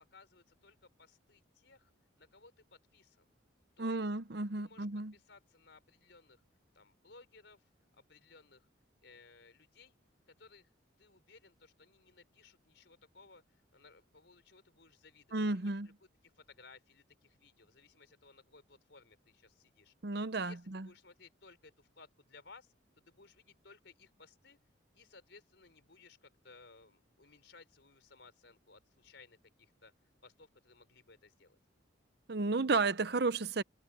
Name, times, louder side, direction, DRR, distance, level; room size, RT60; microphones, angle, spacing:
voice 1, 0.0-1.9 2.2-3.3 3.8-4.0 4.6-4.9 5.1-6.4 6.7-8.7 9.0-10.0 10.3-10.7 11.0-24.6 24.9-29.9 30.2-31.6, left 4 dB, 65° left, 4.4 m, -60 dB
voice 2, 3.8-5.1 15.3-15.9 20.0-20.9 32.3-33.6, right 3 dB, 55° right, 0.7 m, -33 dB
head